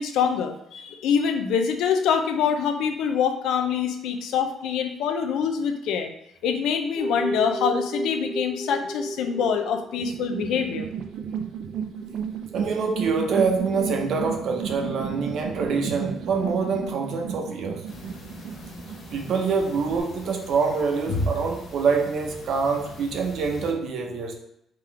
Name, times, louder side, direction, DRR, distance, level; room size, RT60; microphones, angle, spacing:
voice 1, 0.0-6.1 6.4-10.9, left 7 dB, 85° left, 7 dB, 0.5 m, -25 dB
sound 1, 7.0-20.1, right 1 dB, ahead, 0.5 m, -37 dB
sound 2, 10.0-20.0, right 7 dB, 80° right, 0.4 m, -34 dB
voice 2, 12.5-17.8 19.1-24.3, right 5 dB, 55° right, 3 dB, 0.8 m, -25 dB
sound 3, 17.9-23.7, left 1 dB, 45° left, 0.7 m, -36 dB
3.8 x 3.1 x 4.5 m, 0.77 s
cardioid pair, 160°, 0 cm